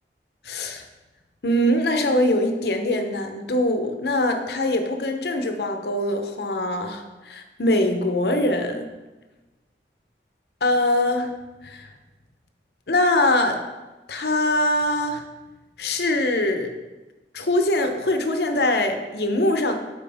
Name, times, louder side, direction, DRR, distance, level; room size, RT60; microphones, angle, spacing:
voice 1, 0.4-0.8 1.4-8.9 10.6-11.3 11.6-11.9 12.9-13.6 14.1-15.2 15.8-16.7 17.3-19.7, left 1 dB, 70° left, 6 dB, 0.7 m, -22 dB
8.5 x 4.7 x 3.5 m, 1.1 s
head